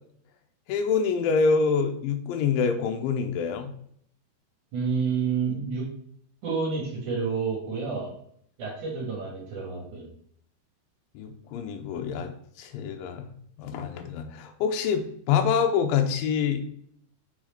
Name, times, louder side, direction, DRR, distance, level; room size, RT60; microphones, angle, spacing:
voice 1, 0.7-3.7 11.1-13.2 13.6-16.7, left 6 dB, 85° left, 5 dB, 2.0 m, -26 dB
voice 2, 4.7-5.9 6.4-8.1 8.6-10.1, right 5 dB, 55° right, -3 dB, 2.8 m, -29 dB
6.1 x 4.8 x 4.3 m, 0.65 s
omnidirectional pair, 5.0 m